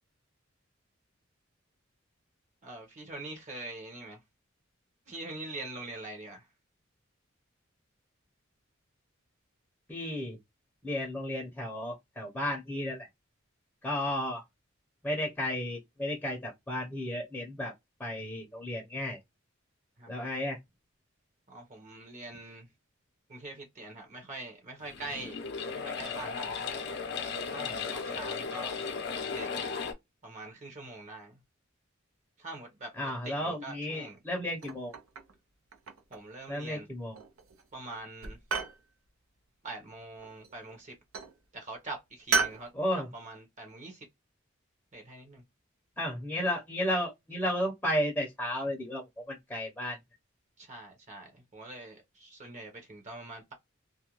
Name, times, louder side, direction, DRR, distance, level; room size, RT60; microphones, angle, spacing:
voice 1, 2.6-4.2 5.1-6.5 20.0-20.3 21.5-22.7 23.3-25.4 25.7-26.6 27.5-28.8 29.3-29.8 30.2-31.4 32.4-34.2 36.1-36.9 37.7-38.4 39.6-40.9 41.5-44.1 44.9-45.4 50.6-53.5, right 2 dB, 35° right, 0.8 m, -44 dB
voice 2, 9.9-10.4 10.8-13.1 13.8-14.4 15.0-17.7 18.0-19.2 20.1-20.6 33.0-34.9 36.5-37.2 42.7-43.1 46.0-50.0, left 1 dB, 10° left, 0.6 m, -33 dB
sound 1, 24.8-29.9, left 5 dB, 55° left, 0.6 m, -36 dB
sound 2, 34.6-35.4 35.7-36.3 37.1-37.6 37.9-38.8 40.2-40.7 41.1-41.4 42.3-42.6, right 5 dB, 85° right, 0.6 m, -33 dB
2.4 x 2.1 x 2.9 m
head